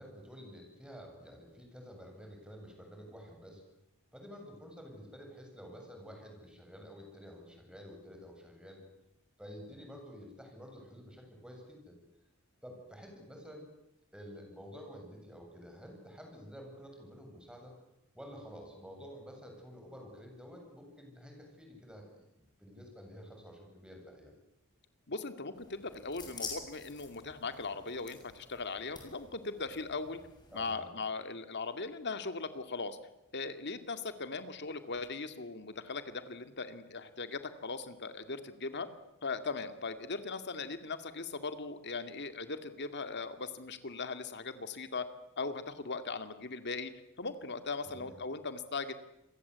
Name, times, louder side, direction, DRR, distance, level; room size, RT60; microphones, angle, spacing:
voice 1, 0.0-3.6 4.1-8.8 9.4-12.0 12.6-13.6 14.1-17.8 18.1-24.3 30.5-30.9 47.8-48.1, equal, 5° right, 2 dB, 7.8 m, -50 dB
voice 2, 25.1-30.2 30.5-33.0 33.3-38.9 39.2-45.1 45.4-46.9 47.2-48.9, left 4 dB, 50° left, 9 dB, 2.3 m, -39 dB
sound 1, 25.5-30.7, left 4 dB, 20° left, 7.1 m, -49 dB
28.5 x 23.0 x 8.3 m, 0.84 s
head